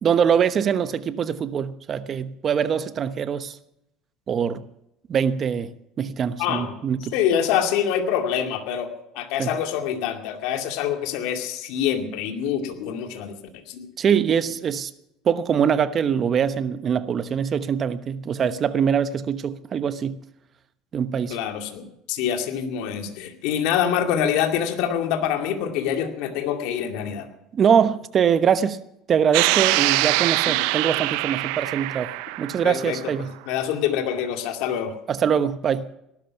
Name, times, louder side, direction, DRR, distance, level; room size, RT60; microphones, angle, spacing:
voice 1, 0.0-3.6 4.3-4.7 5.1-7.1 9.4-9.6 14.0-14.9 15.2-20.2 20.9-21.4 27.5-28.8 29.1-32.1 32.4-33.3 35.1-35.9, right 7 dB, 35° right, 1.1 m, -23 dB
voice 2, 6.4-6.7 7.1-8.9 9.1-13.4 13.7-13.9 21.3-27.3 32.6-33.1 33.5-34.9, left 9 dB, 75° left, 2.3 m, -25 dB
sound 1, 29.3-33.1, right 19 dB, 80° right, 0.6 m, -23 dB
18.5 x 12.5 x 5.9 m
cardioid pair, 135°, 0 cm